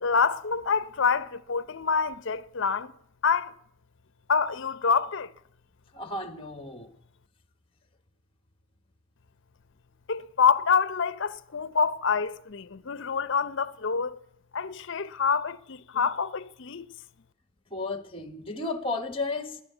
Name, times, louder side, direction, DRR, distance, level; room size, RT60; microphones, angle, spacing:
voice 1, 0.0-2.9 3.2-3.5 4.3-5.3 10.1-14.2 14.5-16.9, left 6 dB, 55° left, 0.6 m, -26 dB
voice 2, 5.9-6.9 15.9-16.1 17.7-19.6, left 3 dB, 25° left, 1.3 m, -33 dB
19.5 x 9.2 x 8.1 m
head